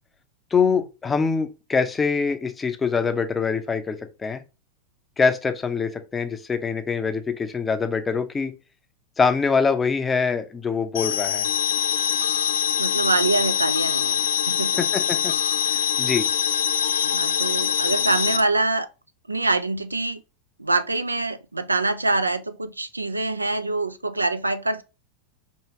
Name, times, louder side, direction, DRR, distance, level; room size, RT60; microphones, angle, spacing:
voice 1, 0.5-4.4 5.2-8.5 9.2-11.5 14.8-15.3 15.7-16.3, left 5 dB, 15° left, 0.5 m, -24 dB
sound 1, 10.9-18.4, left 9 dB, 65° left, 0.3 m, -23 dB
voice 2, 12.8-14.8 17.0-18.9 19.3-20.2 20.6-24.8, right 2 dB, 80° right, 0.3 m, -25 dB
4.6 x 2.8 x 2.8 m
figure-of-eight pair, 90°, 0 cm